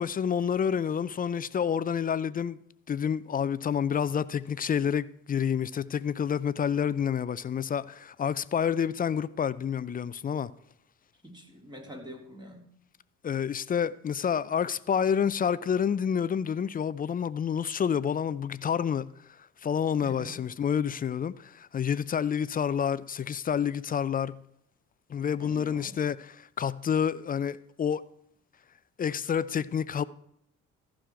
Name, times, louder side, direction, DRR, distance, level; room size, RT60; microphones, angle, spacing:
voice 1, 0.0-2.6 2.9-10.5 13.2-19.1 19.6-24.4 25.1-28.0 29.0-30.0, left 7 dB, 25° left, 0.4 m, -28 dB
voice 2, 11.2-12.7 20.0-20.4 25.4-26.0, equal, 10° right, 3.1 m, -45 dB
14.0 x 6.3 x 4.6 m
hypercardioid pair, 50°, 40 cm